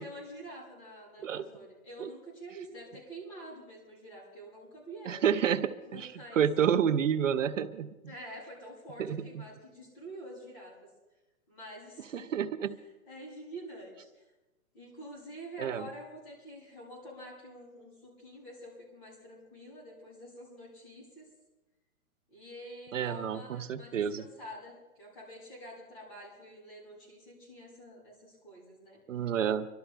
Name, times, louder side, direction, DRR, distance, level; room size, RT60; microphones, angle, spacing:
voice 1, 0.0-5.3 5.9-6.5 8.1-10.8 11.5-12.3 13.1-14.2 14.7-21.3 22.3-29.0, right 1 dB, 30° left, -5 dB, 7.2 m, -47 dB
voice 2, 5.1-7.9 9.0-9.2 12.1-12.7 15.6-15.8 22.9-24.2 29.1-29.7, right 8 dB, 60° right, 10 dB, 0.8 m, -29 dB
26.5 x 12.5 x 3.3 m, 1.1 s
hypercardioid pair, 160°, 43 cm